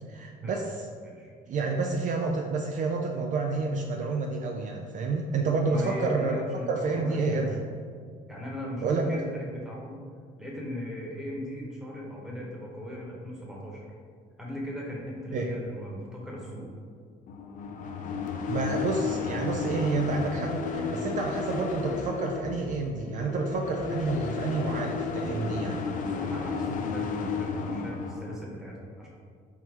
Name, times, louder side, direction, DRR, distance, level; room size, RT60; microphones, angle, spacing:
voice 1, 0.1-0.9 1.5-6.4 6.7-7.7 8.8-9.2 15.3-15.5 18.5-25.8, right 3 dB, 50° right, 2 dB, 0.4 m, -29 dB
voice 2, 5.7-7.6 8.3-10.0 10.4-13.8 14.4-16.7 25.9-29.1, left 1 dB, 5° right, -4 dB, 1.0 m, -38 dB
sound 1, 17.3-28.4, left 5 dB, 50° left, 0.4 m, -33 dB
4.2 x 3.8 x 3.0 m, 2.1 s
cardioid pair, 110°, 17 cm